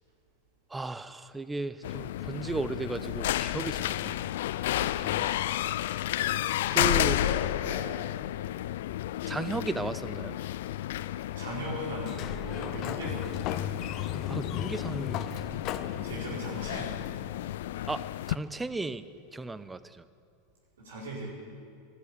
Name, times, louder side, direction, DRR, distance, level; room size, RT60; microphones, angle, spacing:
voice 1, 0.7-4.3 4.8-5.4 6.7-7.2 9.3-10.4 14.3-15.3 17.9-18.0 18.3-19.0 19.3-20.0, right 3 dB, 10° right, 14 dB, 0.7 m, -35 dB
sound 1, 1.8-18.4, left 13 dB, 70° left, 0.4 m, -32 dB
voice 2, 7.0-7.9 11.3-13.3 16.0-16.9 20.8-21.3, right 1 dB, 85° right, -6 dB, 4.8 m, -38 dB
Sliding door, 12.0-17.7, left 9 dB, 50° left, 0.9 m, -37 dB
13.0 x 11.5 x 9.8 m, 2.3 s
hypercardioid pair, 100°, 0 cm